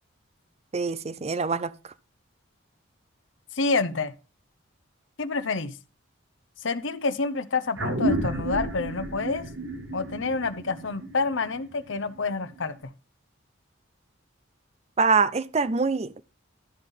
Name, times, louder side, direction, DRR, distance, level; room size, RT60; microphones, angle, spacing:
voice 1, 0.7-1.7 15.0-16.2, right 4 dB, 30° right, 0.5 m, -24 dB
voice 2, 3.5-4.1 5.2-5.7 6.6-9.4 9.9-12.7, left 4 dB, 65° left, 0.8 m, -28 dB
sound 1, 7.8-12.6, right 1 dB, 70° right, 2.0 m, -31 dB
12.5 x 5.4 x 5.5 m
head